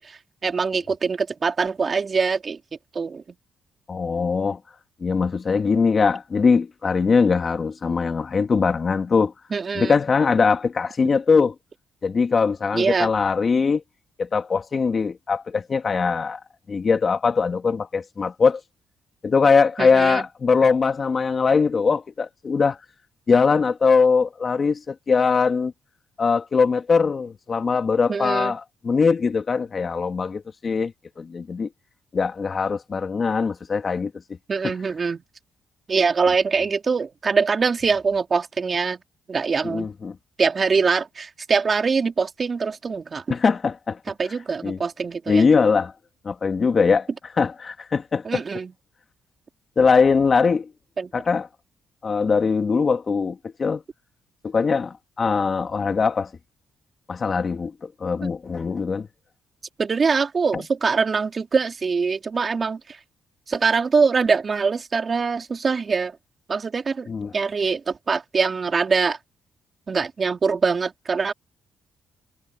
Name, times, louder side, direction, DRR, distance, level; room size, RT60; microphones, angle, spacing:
voice 1, 0.0-2.6 2.9-3.2 9.5-9.9 12.7-13.1 19.8-20.2 28.1-28.5 34.5-35.2 35.9-39.0 39.3-39.9 40.4-43.2 44.2-45.5 48.2-48.7 51.0-51.1 59.8-63.0 63.5-66.2 66.5-67.1 67.3-69.2 69.9-71.3, right 5 dB, 40° right, 3.4 m, -23 dB
voice 2, 3.9-4.6 5.0-9.3 9.7-11.5 12.0-13.8 14.2-16.4 16.7-18.6 19.2-22.8 23.3-25.7 26.2-31.7 32.1-34.1 34.6-34.7 39.6-40.2 43.3-44.0 44.6-44.8 45.3-45.9 46.2-47.1 47.4-48.4 49.8-50.7 51.1-51.5 52.0-53.8 54.4-56.3 57.1-59.1 60.5-60.6 67.1-67.3, left 5 dB, 40° left, 2.3 m, -21 dB
cardioid pair, 90°, 0 cm